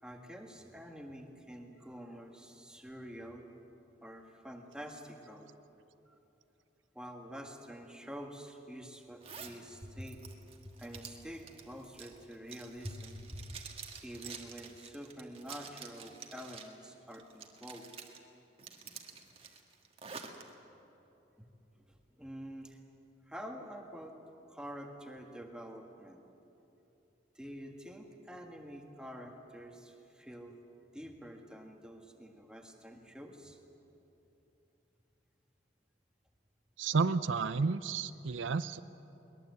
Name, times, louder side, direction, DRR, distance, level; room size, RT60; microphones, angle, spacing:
voice 1, 0.0-3.4 4.0-5.5 6.1-6.2 6.9-10.3 10.6-13.6 14.0-17.9 21.8-22.8 23.3-24.2 24.5-26.2 27.3-30.6 30.9-33.6, equal, 5° right, 2 dB, 1.6 m, -47 dB
Zipper (clothing), 9.2-9.6 10.0-16.8 17.1-18.2 18.6-20.4, right 6 dB, 30° right, 1.6 m, -49 dB
voice 2, 36.8-38.8, right 4 dB, 85° right, 13 dB, 0.6 m, -31 dB
22.0 x 20.5 x 8.1 m, 3.0 s
head